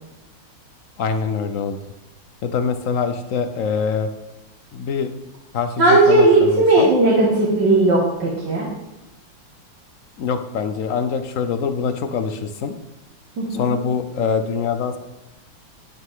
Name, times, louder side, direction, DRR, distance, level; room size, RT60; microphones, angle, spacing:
voice 1, 1.0-1.8 2.4-4.1 4.7-5.1 5.5-6.9 10.2-12.7 13.5-15.0, left 6 dB, 65° left, 9 dB, 0.8 m, -24 dB
voice 2, 5.8-8.7 13.4-13.7, right 2 dB, 65° right, -5 dB, 2.4 m, -16 dB
10.0 x 9.4 x 3.7 m, 1.0 s
omnidirectional pair, 2.1 m